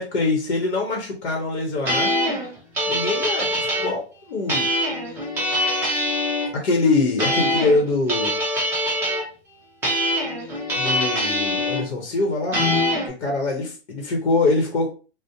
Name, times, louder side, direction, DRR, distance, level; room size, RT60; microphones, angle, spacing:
voice 1, 0.0-2.1 2.9-4.7 6.5-8.4 10.8-12.8 13.0-14.9, left 3 dB, 80° left, 0 dB, 0.9 m, -23 dB
sound 1, 1.8-3.9 4.5-6.5 7.2-7.8 8.1-9.3 9.8-11.8 12.5-13.1, equal, 5° right, 0.5 m, -23 dB
2.7 x 2.1 x 2.5 m, 0.35 s
hypercardioid pair, 140°, 33 cm